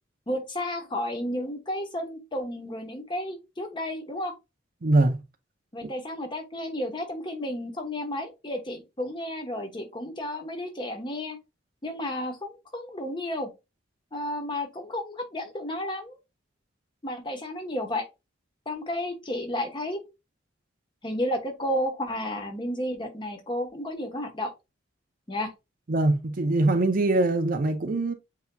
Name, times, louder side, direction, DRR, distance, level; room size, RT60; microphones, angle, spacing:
voice 1, 0.3-4.3 5.7-11.4 11.8-13.5 14.1-16.2 17.0-18.1 18.7-20.0 21.0-24.5 25.3-25.5, left 1 dB, 25° left, 1.0 m, -32 dB
voice 2, 4.8-5.1 5.8-5.9 25.9-28.1, right 2 dB, 45° right, 0.6 m, -23 dB
8.0 x 2.8 x 2.3 m
head